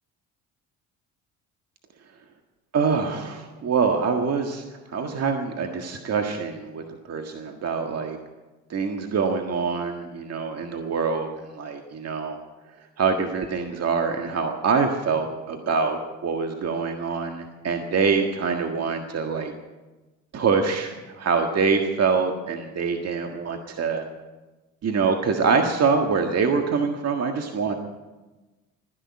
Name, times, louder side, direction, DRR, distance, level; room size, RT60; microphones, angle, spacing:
voice 1, 2.7-4.6 4.9-8.2 8.7-11.3 11.6-12.4 13.0-19.5 20.3-24.0 24.8-27.8, right 5 dB, 45° right, 4 dB, 1.7 m, -25 dB
14.0 x 10.5 x 8.5 m, 1.2 s
supercardioid pair, 70°, 35 cm